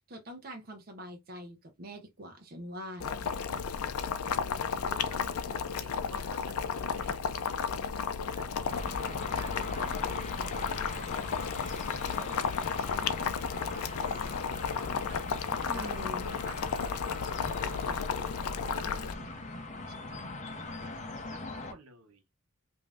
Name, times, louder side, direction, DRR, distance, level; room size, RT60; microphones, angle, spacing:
voice 1, 0.1-3.3 15.7-16.4, equal, 45° right, 0.7 m, -44 dB
Boiling, 3.0-19.1, left 6 dB, 80° left, 0.4 m, -33 dB
voice 2, 4.5-8.1 8.4-13.3 13.7-22.2, right 3 dB, 75° right, 0.9 m, -53 dB
sound 1, 8.7-21.7, left 3 dB, 35° left, 0.6 m, -41 dB
5.0 x 2.6 x 2.4 m
head